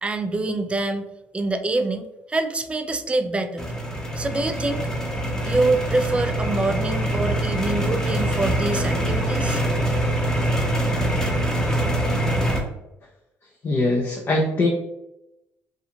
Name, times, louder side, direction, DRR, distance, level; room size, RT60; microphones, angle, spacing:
voice 1, 0.0-3.7 4.2-4.9 5.4-9.6, right 2 dB, 20° right, 8 dB, 0.3 m, -25 dB
sound 1, 3.6-12.6, right 1 dB, 10° left, 0.8 m, -24 dB
voice 2, 13.6-14.7, left 2 dB, 40° left, -1 dB, 0.5 m, -21 dB
2.4 x 2.4 x 2.8 m, 0.90 s
cardioid pair, 85°, 6 cm